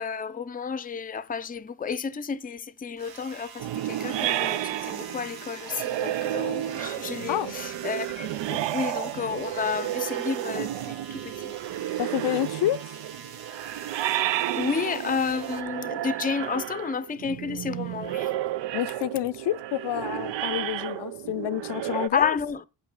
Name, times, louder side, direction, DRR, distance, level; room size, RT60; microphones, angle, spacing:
voice 1, 0.0-11.6 14.5-18.4 22.1-22.6, left 6 dB, 20° left, 0.5 m, -31 dB
sound 1, 3.0-15.6, right 6 dB, 60° right, 1.0 m, -44 dB
sound 2, 3.6-22.1, right 13 dB, 85° right, 0.6 m, -32 dB
voice 2, 12.0-12.8 18.7-22.4, left 13 dB, 75° left, 0.5 m, -28 dB
8.5 x 5.4 x 5.1 m
wide cardioid pair, 115°, 43 cm